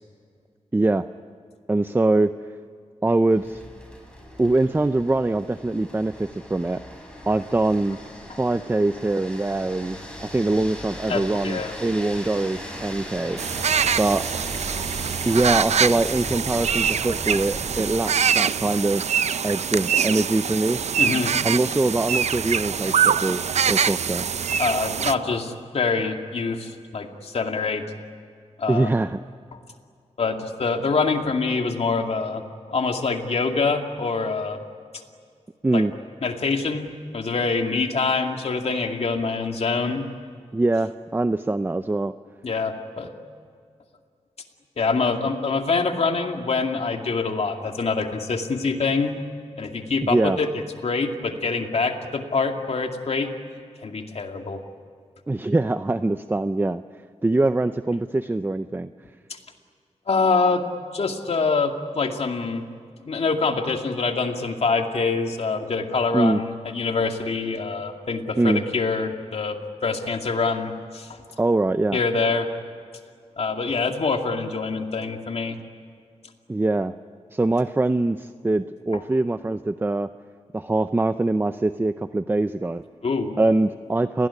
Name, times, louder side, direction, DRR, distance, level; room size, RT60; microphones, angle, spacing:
voice 1, 0.7-1.1 1.7-2.3 3.0-3.6 4.4-6.8 7.3-8.0 8.4-13.4 14.0-14.2 15.3-19.0 19.4-20.8 21.4-23.4 23.7-24.5 28.7-29.2 35.6-35.9 40.5-42.1 50.0-50.4 55.3-56.8 57.2-58.9 66.1-66.4 68.4-68.6 71.4-72.0 76.5-76.9 77.3-80.1 80.5-82.8 83.4-84.3, right 2 dB, 20° right, 11 dB, 0.6 m, -23 dB
sound 1, 3.3-17.9, left 1 dB, 10° left, 7.2 m, -38 dB
voice 2, 11.1-11.7 21.0-21.3 24.6-27.8 28.6-28.9 29.5-29.6 30.2-32.4 32.7-34.6 35.7-35.8 36.2-40.0 42.4-43.1 44.8-49.2 49.6-53.3 53.8-54.6 59.3-59.4 60.1-60.6 60.9-62.6 63.1-71.2 71.9-72.5 73.4-75.6 78.9-79.0 83.0-83.3, left 4 dB, 65° left, 4 dB, 2.4 m, -25 dB
sound 2, 13.4-25.1, right 7 dB, 80° right, 0.6 m, -24 dB
29.5 x 20.0 x 9.9 m, 2.2 s
wide cardioid pair, 90°, 11 cm